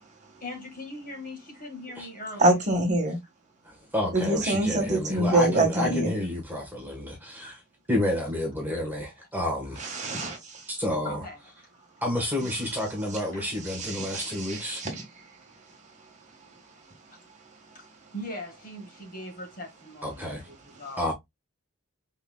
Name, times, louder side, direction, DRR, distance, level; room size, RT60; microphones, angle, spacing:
voice 1, 0.4-2.6 7.4-7.5 8.7-8.8 11.0-11.4 13.3-13.4 17.7-17.8 18.1-21.0, left 1 dB, 40° left, 1.7 m, -40 dB
voice 2, 2.4-3.2 4.1-6.2 9.8-10.7 13.7-15.1, right 2 dB, 35° right, 1.7 m, -25 dB
voice 3, 3.6-7.6 7.9-9.9 10.7-11.2 12.0-14.8 20.0-20.5 21.0-21.1, left 1 dB, 10° right, 1.3 m, -30 dB
5.3 x 3.7 x 2.3 m
head